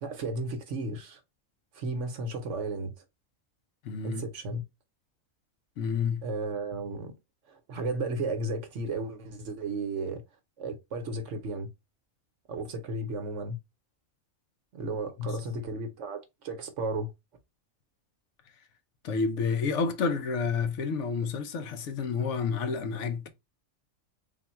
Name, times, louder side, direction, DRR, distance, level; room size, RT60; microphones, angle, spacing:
voice 1, 0.0-1.2 1.7-2.9 4.0-4.6 6.2-7.1 7.5-10.2 10.6-11.7 12.5-13.6 14.7-17.1, right 2 dB, 65° right, 1.1 m, -34 dB
voice 2, 3.8-4.2 5.8-6.3 15.2-15.4 19.0-23.3, left 5 dB, 65° left, 1.0 m, -29 dB
3.7 x 2.2 x 4.2 m
omnidirectional pair, 1.4 m